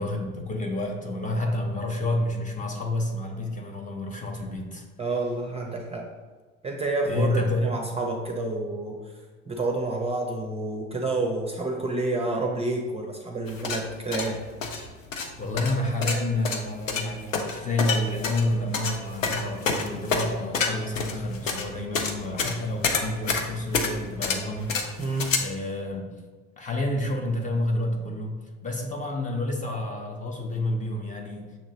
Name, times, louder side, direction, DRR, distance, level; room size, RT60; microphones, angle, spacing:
voice 1, 0.0-4.8 7.0-7.8 15.4-25.0 25.4-26.2 26.6-31.6, left 1 dB, 20° left, 2 dB, 0.7 m, -29 dB
voice 2, 5.0-6.1 6.6-9.0 9.5-14.4 25.0-25.3, right 2 dB, 15° right, 1 dB, 0.6 m, -29 dB
sound 1, 13.5-25.4, left 4 dB, 85° left, 0.6 m, -28 dB
6.5 x 2.9 x 2.8 m, 1.4 s
figure-of-eight pair, 65°, 38 cm